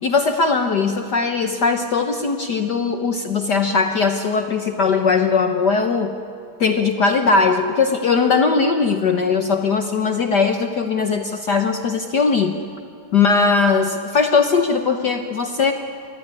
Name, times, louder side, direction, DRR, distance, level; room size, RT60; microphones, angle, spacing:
voice 1, 0.0-6.1 6.6-12.6 13.1-15.7, left 4 dB, 65° left, 6 dB, 1.0 m, -19 dB
26.5 x 22.0 x 9.7 m, 2.4 s
omnidirectional pair, 3.3 m